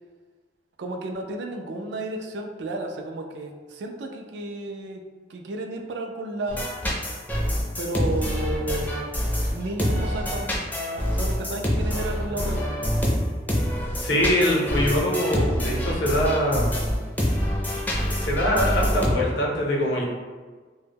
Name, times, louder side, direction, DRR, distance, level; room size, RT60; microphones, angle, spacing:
voice 1, 0.8-5.0 5.3-6.6 7.8-9.1 9.5-10.6 11.1-12.8, right 2 dB, 70° right, 3 dB, 0.3 m, -32 dB
sound 1, 6.5-19.1, equal, 10° left, 0.4 m, -26 dB
voice 2, 14.0-16.7 18.0-20.0, equal, 70° left, -2 dB, 0.6 m, -23 dB
2.1 x 2.0 x 3.3 m, 1.4 s
head